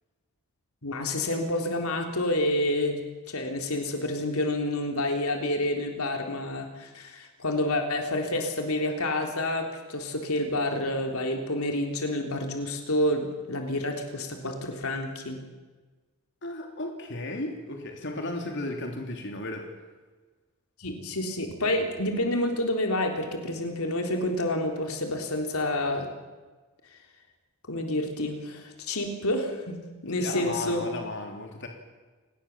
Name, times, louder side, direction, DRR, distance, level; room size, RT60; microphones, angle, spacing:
voice 1, 0.8-15.4 20.8-26.1 27.7-29.8 30.0-30.8, left 1 dB, 80° left, 3 dB, 3.7 m, -29 dB
voice 2, 16.4-19.7 30.1-31.7, left 2 dB, 55° left, 2 dB, 3.3 m, -34 dB
28.5 x 20.0 x 7.5 m, 1.3 s
head